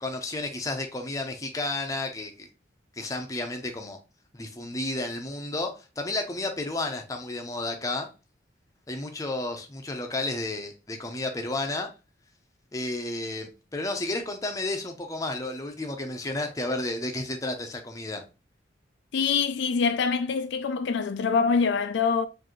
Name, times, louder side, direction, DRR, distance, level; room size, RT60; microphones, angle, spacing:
voice 1, 0.0-2.5 3.0-4.0 4.3-8.1 8.9-11.9 12.7-18.2, left 2 dB, 20° left, 0.6 m, -32 dB
voice 2, 19.1-22.3, left 5 dB, 75° left, 0.4 m, -25 dB
4.7 x 2.7 x 2.9 m
head